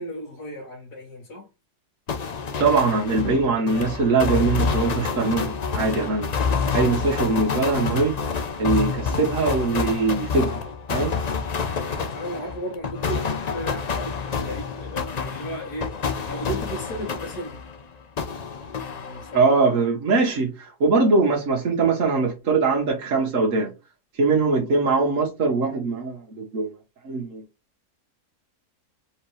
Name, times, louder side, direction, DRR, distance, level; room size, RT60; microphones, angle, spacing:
voice 1, 0.0-1.5 11.7-17.6 18.7-19.6, right 1 dB, 90° left, 2.1 m, -35 dB
sound 1, 2.1-17.8 18.2-19.5, left 5 dB, 70° left, 0.4 m, -28 dB
voice 2, 2.6-6.3 6.7-8.2 8.6-10.6 10.9-11.1 19.3-23.7 24.1-26.7 27.0-27.4, right 3 dB, 55° right, 1.4 m, -22 dB
4.4 x 3.4 x 3.1 m
omnidirectional pair, 1.7 m